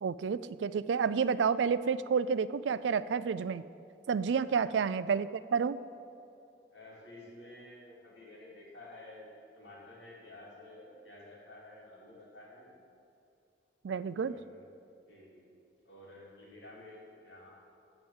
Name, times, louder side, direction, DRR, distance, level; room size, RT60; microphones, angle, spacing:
voice 1, 0.0-3.6 4.1-5.8 13.8-14.3, right 6 dB, 85° right, 16 dB, 0.4 m, -30 dB
voice 2, 4.5-4.8 6.7-12.8 14.1-14.6 15.0-15.4 15.8-17.5, left 1 dB, 80° left, -4 dB, 3.1 m, -52 dB
14.5 x 5.0 x 7.3 m, 2.7 s
head